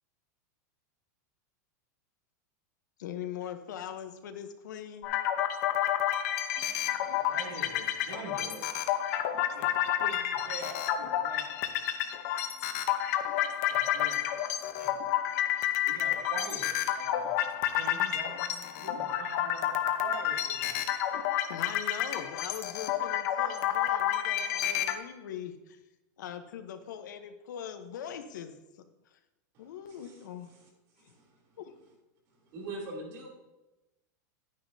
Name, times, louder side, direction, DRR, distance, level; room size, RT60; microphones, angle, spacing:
voice 1, 3.0-5.1 21.5-25.8 26.2-29.2 29.6-30.5 31.0-31.1 31.6-31.7, left 9 dB, 85° left, 8 dB, 1.0 m, -41 dB
sound 1, 5.0-25.0, left 11 dB, 55° left, 0.9 m, -30 dB
voice 2, 6.6-20.9, right 3 dB, 75° right, 0 dB, 2.3 m, -46 dB
voice 3, 29.5-30.7 31.0-31.4 32.4-33.3, right 2 dB, 45° right, -2 dB, 3.2 m, -44 dB
9.8 x 9.5 x 2.7 m, 1.0 s
supercardioid pair, 160°, 10 cm